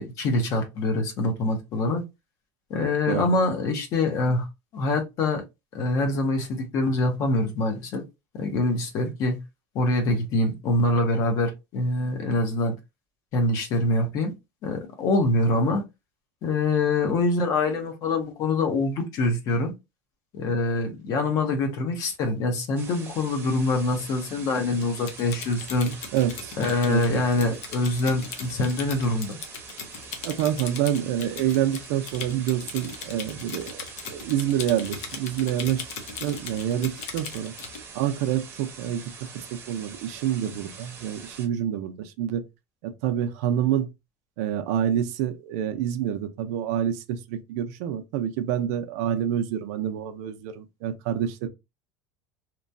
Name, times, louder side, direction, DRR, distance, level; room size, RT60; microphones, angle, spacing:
voice 1, 0.0-2.0 2.7-4.5 4.7-5.4 5.7-8.0 8.3-9.4 9.7-12.7 13.3-14.3 14.6-15.8 16.4-19.7 20.3-25.9 26.6-29.4, left 2 dB, 40° left, 0.8 m, -25 dB
sound 1, 22.8-41.5, right 5 dB, 25° right, 0.7 m, -44 dB
Typing, 24.8-37.8, left 6 dB, 90° left, 0.8 m, -38 dB
voice 2, 26.1-26.6 26.8-27.2 30.2-35.9 36.2-37.5 37.9-39.0 39.3-42.4 42.8-43.9 44.4-51.5, right 10 dB, 70° right, 0.5 m, -27 dB
3.0 x 2.2 x 2.5 m
cardioid pair, 165°, 9 cm